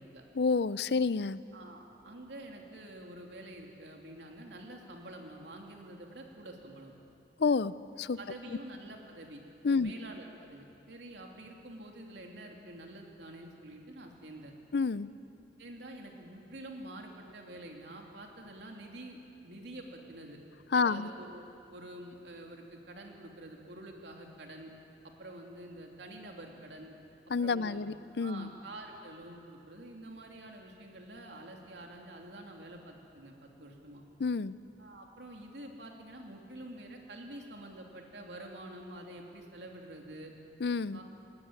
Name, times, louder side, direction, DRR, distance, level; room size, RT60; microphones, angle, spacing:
voice 1, 0.3-1.4 7.4-8.2 9.6-9.9 14.7-15.1 20.7-21.1 27.3-28.5 34.2-34.6 40.6-41.0, left 4 dB, 65° left, 17 dB, 0.5 m, -29 dB
voice 2, 1.5-6.9 8.2-14.5 15.6-20.4 20.7-21.4 21.7-24.7 25.2-26.9 27.4-27.8 28.2-34.0 34.8-40.3 40.9-41.0, right 1 dB, 80° right, 1 dB, 3.0 m, -47 dB
20.0 x 19.5 x 9.0 m, 2.7 s
head